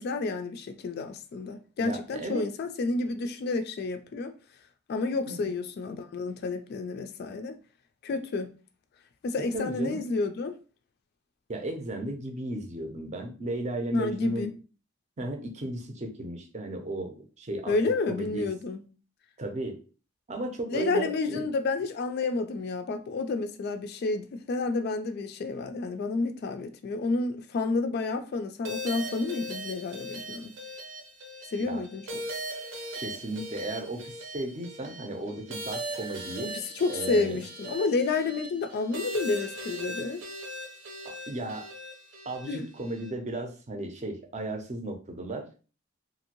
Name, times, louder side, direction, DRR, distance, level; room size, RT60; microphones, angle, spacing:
voice 1, 0.0-4.3 4.9-7.6 8.0-8.5 9.2-10.6 13.9-14.5 17.7-18.8 20.7-30.5 31.5-32.2 36.4-40.2 42.5-42.6, left 3 dB, 55° left, 0.3 m, -30 dB
voice 2, 1.8-2.5 5.3-5.5 9.5-10.0 11.5-14.5 15.2-17.8 18.1-18.5 19.4-19.8 20.3-21.5 31.6-31.8 32.9-36.5 36.9-37.4 41.0-41.7 42.3-45.6, right 2 dB, 35° right, 0.6 m, -35 dB
sound 1, 28.6-43.1, right 1 dB, 75° right, 0.7 m, -39 dB
2.9 x 2.6 x 2.9 m
head